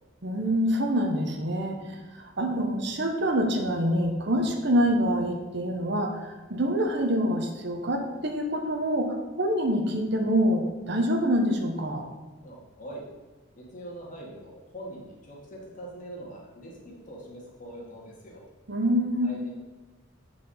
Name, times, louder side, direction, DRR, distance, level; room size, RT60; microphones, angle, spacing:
voice 1, 0.2-12.1 18.7-19.3, equal, 60° right, 3 dB, 1.1 m, -26 dB
voice 2, 12.4-13.1 13.6-18.4 19.2-19.5, right 1 dB, 40° left, -3 dB, 2.1 m, -43 dB
7.9 x 4.8 x 5.6 m, 1.2 s
head